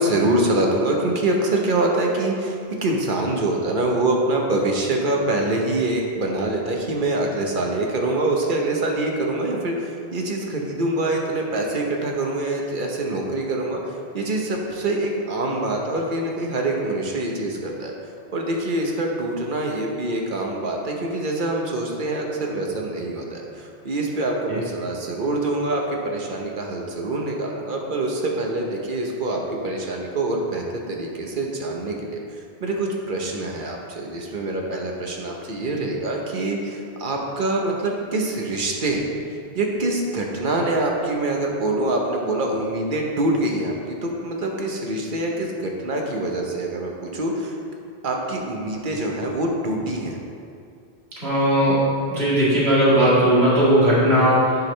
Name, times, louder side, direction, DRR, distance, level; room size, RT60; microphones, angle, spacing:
voice 1, 0.0-17.9 18.3-32.2 32.6-39.0 39.5-47.5 48.0-50.2, right 2 dB, 50° right, 0 dB, 1.0 m, -25 dB
voice 2, 51.2-54.6, equal, 70° right, -8 dB, 2.2 m, -18 dB
10.5 x 4.9 x 3.2 m, 2.4 s
omnidirectional pair, 1.1 m